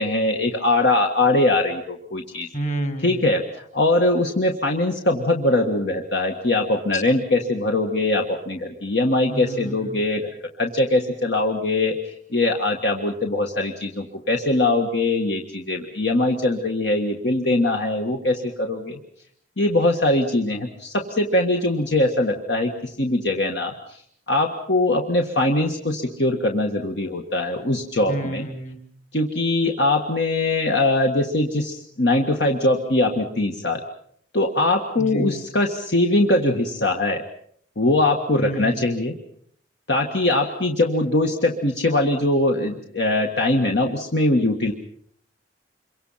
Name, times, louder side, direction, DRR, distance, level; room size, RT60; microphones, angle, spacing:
voice 1, 0.0-2.5 3.0-10.3 10.6-19.0 19.6-24.0 24.3-28.5 29.1-33.8 34.3-37.3 37.8-39.2 39.9-44.7, left 2 dB, 60° left, 3 dB, 1.8 m, -22 dB
voice 2, 2.5-3.2 6.9-7.0 9.3-10.0 28.1-28.8 35.0-35.4 38.4-38.8, right 1 dB, 40° left, 6 dB, 3.8 m, -30 dB
27.0 x 24.5 x 5.8 m, 0.64 s
head